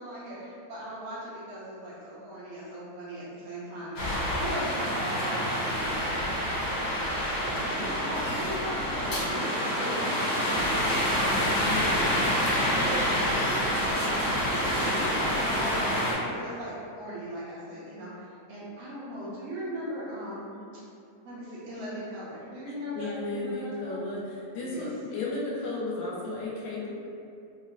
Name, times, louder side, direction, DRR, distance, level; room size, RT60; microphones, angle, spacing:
voice 1, 0.0-20.6 21.2-24.0 24.7-24.9, equal, 75° right, -10 dB, 2.0 m, -39 dB
sound 1, 4.0-16.1, equal, 65° left, 1.7 m, -27 dB
voice 2, 22.9-26.9, left 2 dB, 80° left, -5 dB, 2.3 m, -34 dB
5.6 x 2.1 x 2.5 m, 2.5 s
omnidirectional pair, 4.0 m